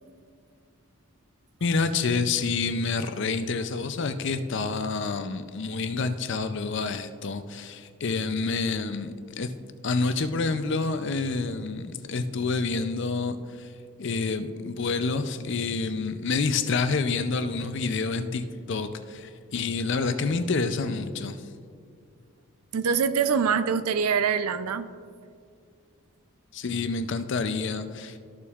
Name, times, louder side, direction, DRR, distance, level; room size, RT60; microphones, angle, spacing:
voice 1, 1.6-9.5 9.8-13.7 14.0-21.4 26.5-28.2, left 4 dB, 50° left, 10 dB, 0.5 m, -28 dB
voice 2, 22.7-24.9, right 6 dB, 85° right, 12 dB, 0.4 m, -24 dB
13.5 x 6.9 x 2.4 m, 2.2 s
head